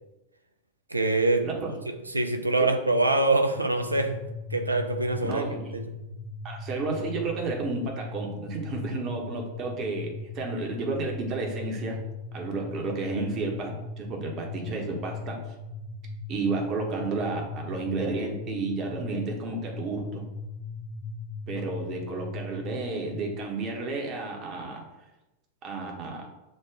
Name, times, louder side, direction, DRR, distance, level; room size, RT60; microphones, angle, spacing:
voice 1, 0.9-1.5 1.9-4.2 4.5-5.8, right 2 dB, 80° right, 6 dB, 0.4 m, -25 dB
sound 1, 3.8-23.3, left 3 dB, 15° left, 0.8 m, -38 dB
voice 2, 5.2-5.7 6.4-12.0 12.3-15.4 16.3-20.2 21.5-24.8 25.6-26.3, right 3 dB, 35° right, 1 dB, 1.0 m, -32 dB
6.4 x 2.3 x 3.5 m, 0.99 s
figure-of-eight pair, 90°, 0 cm